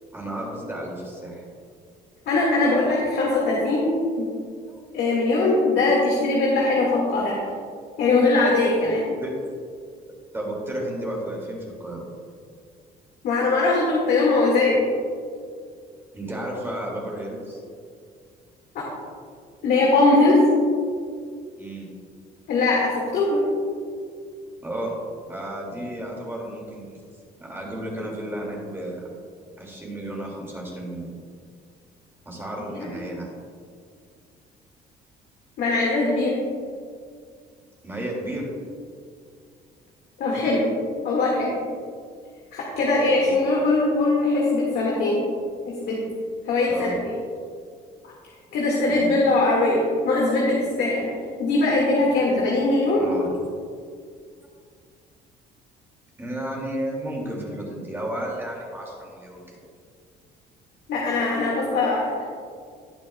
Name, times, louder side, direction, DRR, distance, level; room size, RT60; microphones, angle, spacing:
voice 1, 0.1-1.4 4.7-4.8 8.8-9.3 10.3-12.1 16.1-17.6 21.6-21.9 24.6-24.9 25.3-26.9 27.4-29.0 29.6-31.1 32.3-33.3 37.8-38.5 43.2-43.5 46.7-47.0 48.9-49.2 53.0-53.3 56.2-59.4, right 1 dB, 15° right, -2 dB, 2.2 m, -33 dB
voice 2, 2.3-3.9 4.2-4.3 4.9-7.4 8.0-9.1 13.2-14.8 18.8-18.9 19.6-20.4 22.5-23.4 32.8-32.9 35.6-36.4 40.2-40.7 41.0-41.5 42.5-45.2 45.7-46.0 46.5-47.0 48.5-51.1 51.4-53.0 60.9-62.1, left 2 dB, 70° left, -3 dB, 1.8 m, -21 dB
18.0 x 6.3 x 2.3 m, 2.2 s
cardioid pair, 110°, 17 cm